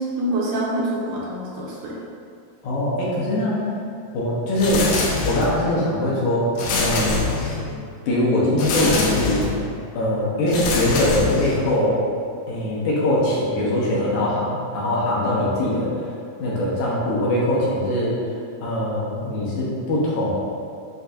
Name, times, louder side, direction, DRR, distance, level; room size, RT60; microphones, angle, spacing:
voice 1, 0.0-1.9 7.7-7.8 15.6-15.7, right 1 dB, 75° right, -5 dB, 2.1 m, -26 dB
voice 2, 2.6-3.6 4.1-4.9 5.2-6.5 6.8-7.2 8.1-9.5 9.9-12.0 12.5-15.9 16.4-18.1 18.6-20.3, left 1 dB, 75° left, -6 dB, 2.2 m, -22 dB
sound 1, 4.6-5.7 6.6-7.8 8.6-9.6 10.5-11.8, left 3 dB, 90° left, 2.4 m, -24 dB
7.8 x 2.6 x 2.5 m, 2.4 s
omnidirectional pair, 3.8 m